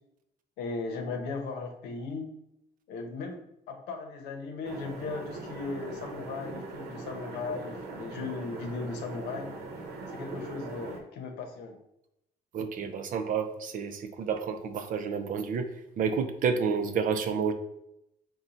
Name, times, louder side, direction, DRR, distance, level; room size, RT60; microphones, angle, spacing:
voice 1, 0.6-2.3 2.9-9.5 10.1-11.7, left 4 dB, 85° left, 3 dB, 0.8 m, -37 dB
sound 1, 4.6-11.0, right 3 dB, 75° right, 0.8 m, -41 dB
voice 2, 12.5-15.7 16.0-17.5, right 6 dB, 55° right, 8 dB, 0.5 m, -30 dB
4.3 x 2.3 x 3.8 m, 0.82 s
cardioid pair, 110°, 17 cm